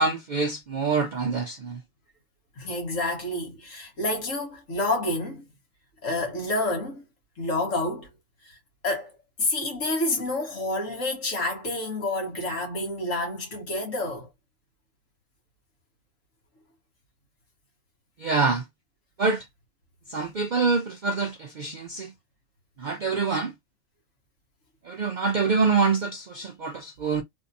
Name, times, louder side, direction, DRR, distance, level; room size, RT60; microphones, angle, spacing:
voice 1, 0.0-1.8 18.2-18.7 19.2-19.5 20.1-22.1 22.8-23.5 24.8-27.2, right 4 dB, 80° right, 0.4 m, -25 dB
voice 2, 2.6-5.5 6.0-7.0 7.4-8.1 8.4-8.6 8.8-14.3, left 2 dB, 65° left, 1.9 m, -29 dB
3.5 x 2.7 x 2.6 m
omnidirectional pair, 1.4 m